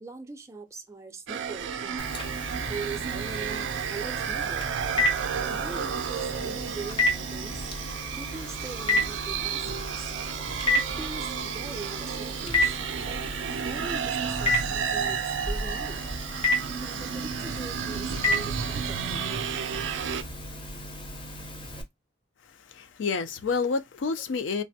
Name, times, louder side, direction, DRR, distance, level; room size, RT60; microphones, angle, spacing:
voice 1, 0.0-2.0 2.7-4.6 5.5-7.7 8.2-10.1 10.8-12.8 13.1-13.2 13.6-16.1 16.8-19.3, right 3 dB, 15° right, 0.4 m, -41 dB
sound 1, 1.3-20.2, right 7 dB, 75° right, 0.4 m, -32 dB
Telephone, 2.0-21.8, left 1 dB, 25° left, 0.6 m, -32 dB
voice 2, 22.7-24.6, left 4 dB, 80° left, 0.4 m, -29 dB
3.3 x 2.1 x 2.6 m
head